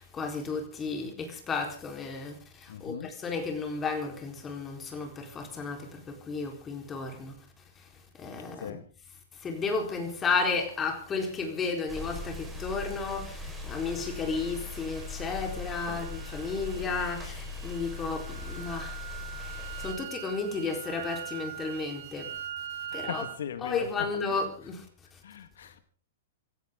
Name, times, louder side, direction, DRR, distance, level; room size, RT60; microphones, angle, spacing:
voice 1, 0.0-7.3 8.1-8.8 9.4-19.0 19.4-19.5 19.8-22.3 22.9-23.2 23.6-24.9, left 4 dB, 15° left, 4.0 m, -33 dB
voice 2, 2.7-3.2 8.5-8.9 15.9-16.0 22.9-24.5 25.2-25.8, left 8 dB, 80° left, 1.8 m, -39 dB
sound 1, 11.9-19.9, left 3 dB, 5° right, 4.8 m, -40 dB
sound 2, 13.7-23.4, right 11 dB, 70° right, 3.3 m, -43 dB
26.5 x 14.5 x 3.8 m
hypercardioid pair, 160°, 0 cm